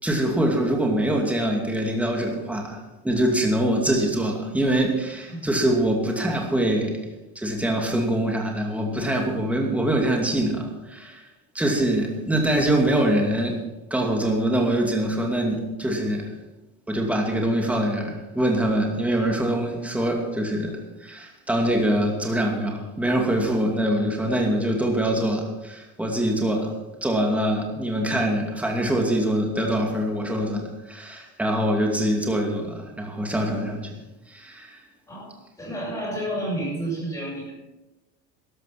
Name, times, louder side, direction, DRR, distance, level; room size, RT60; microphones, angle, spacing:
voice 1, 0.0-2.8 3.0-7.0 7.4-11.2 11.5-13.6 13.9-16.3 16.9-26.7 27.0-34.0 34.3-34.8, right 1 dB, 5° right, 1 dB, 2.4 m, -24 dB
voice 2, 35.6-37.5, right 1 dB, 15° left, -9 dB, 6.3 m, -30 dB
13.5 x 11.5 x 6.0 m, 1.1 s
cardioid pair, 150°, 31 cm